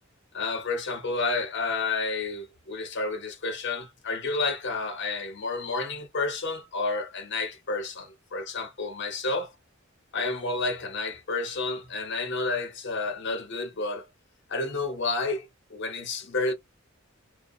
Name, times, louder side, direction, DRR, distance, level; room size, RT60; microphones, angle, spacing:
voice 1, 0.3-9.5 10.1-14.1 14.5-16.5, left 3 dB, 60° left, 0.7 m, -30 dB
2.6 x 2.1 x 2.4 m
head